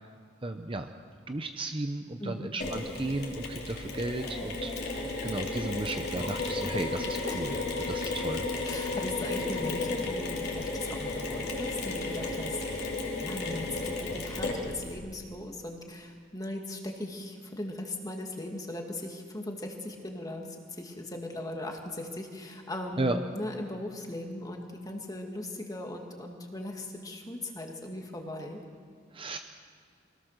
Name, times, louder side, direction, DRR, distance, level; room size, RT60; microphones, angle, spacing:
voice 1, 0.4-0.9 1.3-7.6 7.9-8.4 23.0-23.2 29.1-29.4, right 2 dB, 25° right, 6 dB, 0.7 m, -34 dB
Mechanisms, 2.6-14.9, left 3 dB, 50° left, 3.3 m, -33 dB
voice 2, 8.6-28.6, left 1 dB, 20° left, 2 dB, 2.1 m, -38 dB
24.0 x 18.0 x 6.6 m, 2.1 s
head